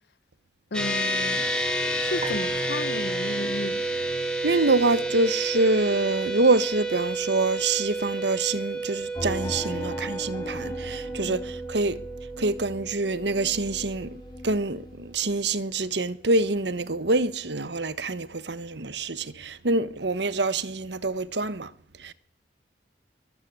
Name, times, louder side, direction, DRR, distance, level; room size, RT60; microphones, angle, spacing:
voice 1, 0.7-1.5 2.0-3.8 11.2-11.4, left 2 dB, 70° left, 0.8 m, -33 dB
sound 1, 0.7-14.4, right 2 dB, 5° left, 4.0 m, -30 dB
sound 2, 2.2-4.7, right 5 dB, 35° right, 2.6 m, -43 dB
voice 2, 4.4-12.0 12.4-21.7 22.0-22.1, right 3 dB, 80° right, 1.3 m, -26 dB
sound 3, 9.1-15.4, left 1 dB, 25° left, 4.2 m, -39 dB
22.5 x 13.5 x 9.5 m
head